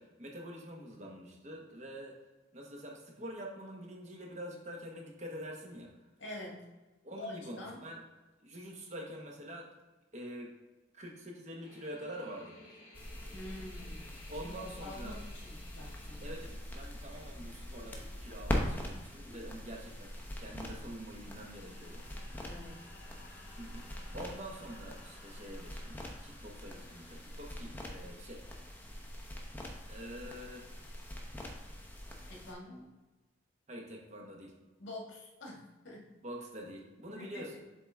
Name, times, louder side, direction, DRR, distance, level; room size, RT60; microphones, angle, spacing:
voice 1, 0.0-2.2 2.5-5.9 7.0-8.0 8.4-9.7 10.1-10.5 10.9-12.6 14.3-15.2 16.2-22.0 23.6-23.9 24.1-28.4 29.9-30.6 33.7-34.5 36.2-37.6, equal, 35° right, 0 dB, 1.2 m, -46 dB
voice 2, 6.2-6.7 7.2-7.8 13.3-16.2 22.4-22.8 32.2-32.9 34.8-36.1 37.2-37.6, left 1 dB, 70° left, -1 dB, 1.6 m, -47 dB
sound 1, 11.6-28.7, left 2 dB, 55° left, 1.8 m, -58 dB
sound 2, 12.9-32.5, left 1 dB, 10° left, 0.8 m, -43 dB
7.6 x 4.0 x 3.5 m, 1.2 s
head